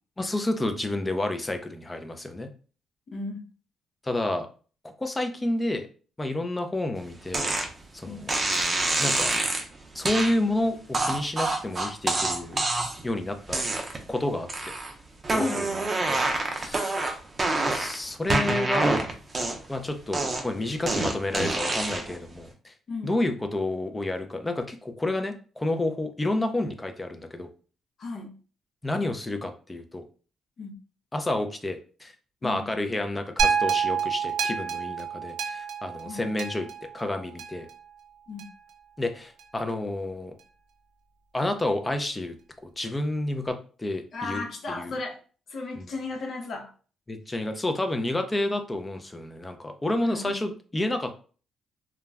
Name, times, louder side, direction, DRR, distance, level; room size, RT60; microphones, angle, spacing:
voice 1, 0.2-2.5 4.0-4.5 5.0-5.9 6.2-7.5 7.9-8.3 9.0-9.3 9.9-12.6 13.0-13.6 14.1-14.5 15.3-16.2 16.5-17.1 17.7-19.1 19.7-22.7 23.0-27.5 28.8-30.0 31.1-32.1 32.4-36.7 36.9-37.7 39.0-40.3 41.3-42.4 42.6-44.4 44.7-45.0 45.7-45.9 47.1-51.1, left 1 dB, 15° left, 6 dB, 0.5 m, -30 dB
voice 2, 3.1-3.4 8.1-8.2 15.4-15.6 22.9-23.2 28.0-28.3 30.6-30.7 32.4-32.7 36.1-36.2 38.3-38.4 44.1-45.2 45.5-46.7 50.0-50.3, left 3 dB, 55° left, 3 dB, 0.7 m, -34 dB
sound 1, 7.3-7.7 8.3-9.6 10.0-10.3 10.9-13.1 13.5-14.1 14.5-14.9 15.2-18.0 18.3-19.8 20.1-22.2, right 2 dB, 30° right, 0.6 m, -26 dB
sound 2, 33.4-37.7 38.4-38.5, right 6 dB, 85° right, 0.4 m, -28 dB
2.3 x 2.0 x 3.3 m, 0.39 s
cardioid pair, 90°, 0 cm